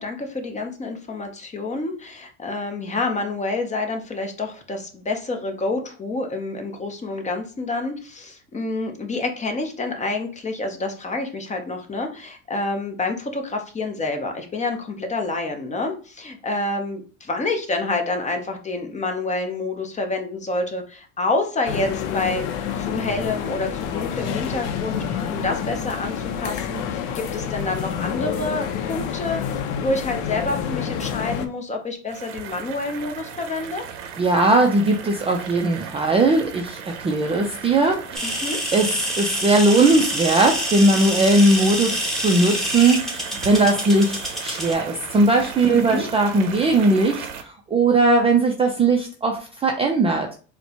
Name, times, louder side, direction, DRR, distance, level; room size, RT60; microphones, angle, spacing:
voice 1, 0.0-22.5 22.7-29.4 29.8-33.9 38.2-38.6 45.7-46.0, left 2 dB, 20° left, 4 dB, 0.7 m, -28 dB
sound 1, 21.6-31.5, left 8 dB, 65° left, 0.6 m, -28 dB
sound 2, 32.1-47.4, right 7 dB, 85° right, 0.7 m, -37 dB
voice 2, 34.2-38.3 38.7-50.3, right 2 dB, 15° right, 2 dB, 0.4 m, -19 dB
sound 3, 38.1-44.7, equal, ahead, 1.0 m, -27 dB
4.2 x 2.2 x 2.8 m, 0.38 s
supercardioid pair, 100°, 35 cm